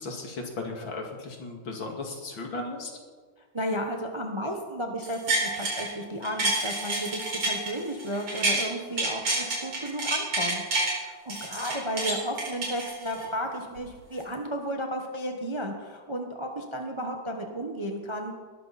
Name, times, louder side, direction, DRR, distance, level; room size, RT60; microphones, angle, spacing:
voice 1, 0.0-2.9, left 3 dB, 65° left, 2 dB, 2.9 m, -36 dB
voice 2, 3.5-10.6 11.0-18.3, equal, 20° right, 3 dB, 0.9 m, -33 dB
sound 1, 5.0-5.9 6.2-8.7 9.0-10.9 11.3-13.3 13.8-13.9, right 2 dB, 80° right, 5.1 m, -28 dB
20.0 x 13.0 x 4.2 m, 1.5 s
omnidirectional pair, 2.3 m